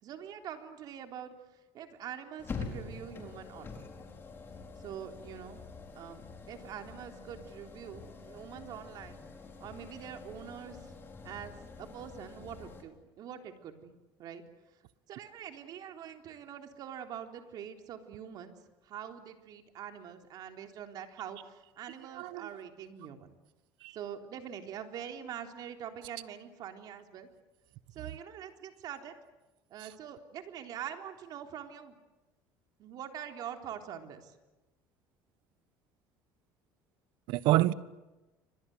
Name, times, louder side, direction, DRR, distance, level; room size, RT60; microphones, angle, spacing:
voice 1, 0.0-1.3 1.7-3.8 4.8-5.6 5.9-9.2 9.6-10.8 11.2-14.4 15.1-18.6 18.8-23.3 23.9-27.3 27.9-29.1 29.7-32.0 32.8-34.3, right 9 dB, 50° right, 3.7 m, -44 dB
sound 1, 2.4-12.8, left 4 dB, 25° left, 4.8 m, -46 dB
voice 2, 22.1-22.5 23.8-24.0 29.8-29.9 37.3-37.7, right 16 dB, 70° right, 1.3 m, -27 dB
29.0 x 25.0 x 8.0 m
cardioid pair, 135°, 8 cm